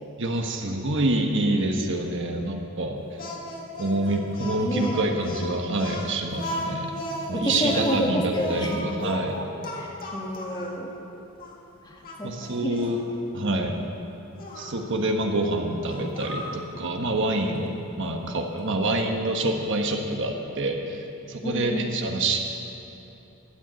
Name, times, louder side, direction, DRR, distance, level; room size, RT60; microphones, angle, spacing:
voice 1, 0.2-3.0 3.8-6.9 7.3-9.4 12.2-13.0 13.3-13.8 14.6-22.4, right 2 dB, 60° right, 3 dB, 1.3 m, -26 dB
Speech, 3.2-10.8 11.4-11.5 12.0-13.0 14.4-14.7 15.8-16.6, equal, 45° left, 1.9 m, -35 dB
voice 2, 4.6-5.0 7.3-8.8 9.7-10.9 11.8-12.3 12.6-12.8 13.4-13.7 21.4-22.1, equal, 20° left, -1 dB, 1.7 m, -30 dB
13.0 x 9.5 x 8.2 m, 2.9 s
head